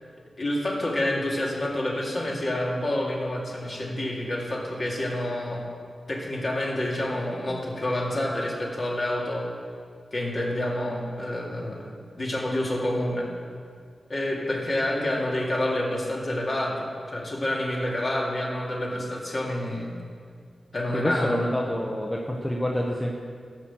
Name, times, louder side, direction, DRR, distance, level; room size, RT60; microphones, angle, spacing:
voice 1, 0.4-5.7 6.1-9.5 10.1-13.3 14.1-19.9 20.7-21.3, left 1 dB, 40° left, -3 dB, 2.5 m, -28 dB
voice 2, 20.9-23.1, equal, 10° left, -1 dB, 0.9 m, -27 dB
14.5 x 5.8 x 7.5 m, 2.1 s
wide cardioid pair, 120°, 0 cm